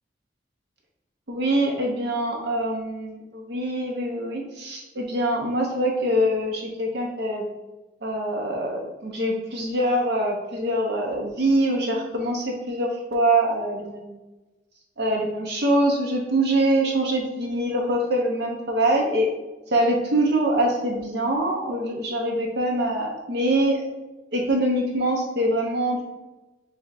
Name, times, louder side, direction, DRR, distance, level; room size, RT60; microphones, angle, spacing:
voice 1, 1.3-7.5 8.0-14.2 15.0-19.3 19.7-23.8 24.3-26.0, right 1 dB, 60° right, 0 dB, 0.7 m, -24 dB
7.5 x 2.7 x 2.5 m, 1.1 s
head